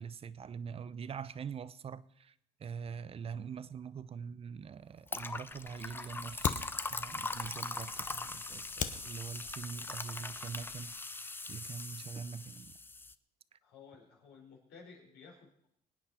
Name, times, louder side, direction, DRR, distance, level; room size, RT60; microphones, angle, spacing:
voice 1, 0.0-2.3 2.6-6.6 6.9-10.9 11.5-12.7, right 6 dB, 35° right, 16 dB, 0.6 m, -44 dB
sound 1, 5.1-13.1, left 3 dB, 10° left, 0.5 m, -41 dB
Fire, 5.5-10.9, left 8 dB, 50° left, 1.0 m, -43 dB
voice 2, 13.6-15.7, left 5 dB, 80° left, -3 dB, 4.9 m, -55 dB
24.0 x 9.1 x 4.3 m, 0.71 s
cardioid pair, 110°, 17 cm